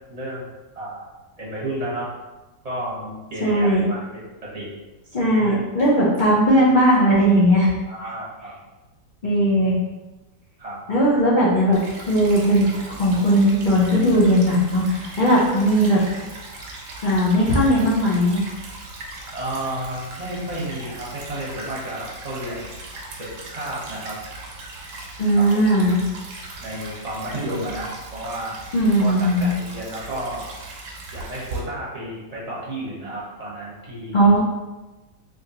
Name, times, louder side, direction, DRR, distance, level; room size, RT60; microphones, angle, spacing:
voice 1, 0.1-1.1 1.4-2.1 2.6-4.8 5.3-5.6 7.9-8.5 10.6-10.8 19.3-22.7 23.2-24.2 25.3-25.4 26.6-28.5 29.0-30.5 31.1-34.4, right 1 dB, 30° right, -7 dB, 0.8 m, -32 dB
voice 2, 3.4-3.9 5.1-7.7 9.2-9.8 10.9-11.8 12.1-16.0 17.0-18.4 25.2-26.0 28.7-29.5 34.1-34.4, equal, 80° left, -7 dB, 0.4 m, -18 dB
Stream / Trickle dribble, 11.7-31.6, right 2 dB, 85° right, 1.4 m, -38 dB
3.6 x 2.8 x 2.8 m, 1.1 s
omnidirectional pair, 1.8 m